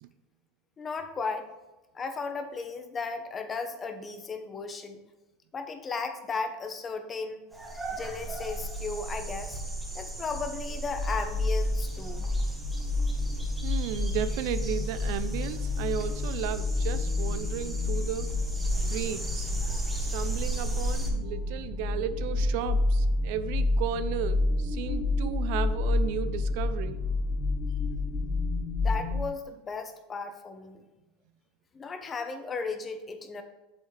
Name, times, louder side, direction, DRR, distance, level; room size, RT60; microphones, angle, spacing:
voice 1, 0.8-1.5 1.9-5.0 5.5-7.4 7.9-9.6 9.9-12.3 28.8-30.8 31.7-33.4, left 4 dB, 20° left, 8 dB, 0.9 m, -35 dB
sound 1, 7.5-21.1, right 2 dB, 5° right, 1.5 m, -36 dB
sound 2, 10.8-29.2, left 2 dB, 45° left, 1.2 m, -29 dB
voice 2, 13.6-18.3 18.8-19.5 20.0-27.0, right 9 dB, 65° right, 12 dB, 0.6 m, -34 dB
8.1 x 7.2 x 3.3 m, 1.1 s
supercardioid pair, 140°, 0 cm